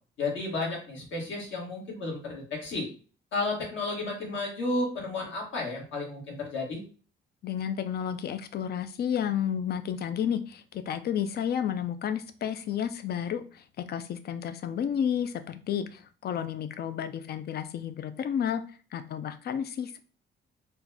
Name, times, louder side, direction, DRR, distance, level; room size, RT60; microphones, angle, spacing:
voice 1, 0.2-2.9 3.3-6.8, left 2 dB, 75° left, -1 dB, 1.6 m, -32 dB
voice 2, 7.4-18.6 18.9-20.0, left 8 dB, 55° left, 11 dB, 0.5 m, -31 dB
4.4 x 2.2 x 2.7 m, 0.38 s
cardioid pair, 90°, 20 cm